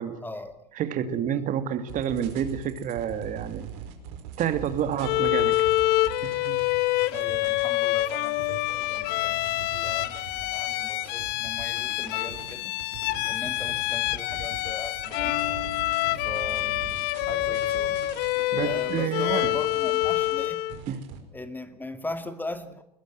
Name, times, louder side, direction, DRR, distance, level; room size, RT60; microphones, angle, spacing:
voice 1, 0.2-0.7 7.1-12.8 13.3-15.5 16.1-18.0 18.6-20.6 21.3-22.8, left 2 dB, 10° left, 10 dB, 2.1 m, -39 dB
voice 2, 0.8-3.7 4.4-5.7 6.2-6.6 18.5-19.6 20.9-21.0, right 9 dB, 40° right, 11 dB, 2.3 m, -29 dB
sound 1, 1.9-21.2, right 7 dB, 55° right, 5.1 m, -42 dB
Bowed string instrument, 5.0-20.8, left 17 dB, 50° left, 1.0 m, -27 dB
21.5 x 18.5 x 9.1 m, 0.74 s
hypercardioid pair, 95°, 21 cm